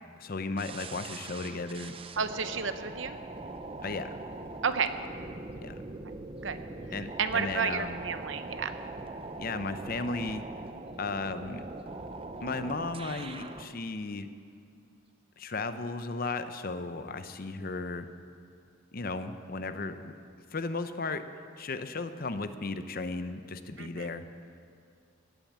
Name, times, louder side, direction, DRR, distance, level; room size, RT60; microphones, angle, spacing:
voice 1, 0.2-2.0 3.8-4.2 5.6-5.8 6.9-8.0 9.4-10.5 11.0-11.6 12.4-14.3 15.4-18.1 18.9-20.1 20.5-21.2 21.6-24.2, left 3 dB, 50° left, 10 dB, 0.7 m, -35 dB
sound 1, 0.6-13.7, right 2 dB, 30° right, 0.6 m, -42 dB
voice 2, 2.2-3.1 4.6-4.9 6.4-6.6 7.2-8.7 23.8-24.1, right 6 dB, 70° right, 10 dB, 0.8 m, -31 dB
17.5 x 8.9 x 7.4 m, 2.5 s
head